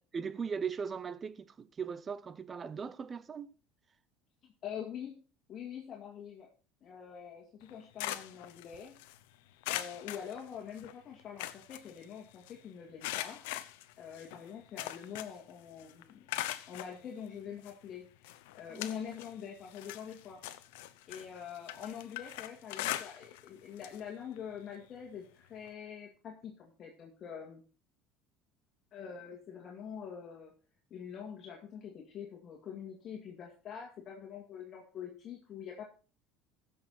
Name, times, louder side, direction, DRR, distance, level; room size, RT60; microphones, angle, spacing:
voice 1, 0.1-3.6 18.7-18.8, right 6 dB, 30° right, 0.7 m, -39 dB
voice 2, 4.6-5.2 5.5-6.5 6.8-9.0 9.7-13.4 14.0-16.3 16.7-20.4 21.1-27.6 28.9-30.5 30.9-35.8, left 8 dB, 45° left, 2.2 m, -45 dB
sound 1, 7.6-9.2 9.6-10.9 11.2-12.5 13.0-15.5 15.8-16.9 17.6-17.7 18.2-19.4 19.7-23.5 23.8-24.0 24.4-24.5 25.7-25.8, left 15 dB, 85° left, 0.8 m, -41 dB
15.5 x 6.5 x 4.2 m
supercardioid pair, 105°, 0 cm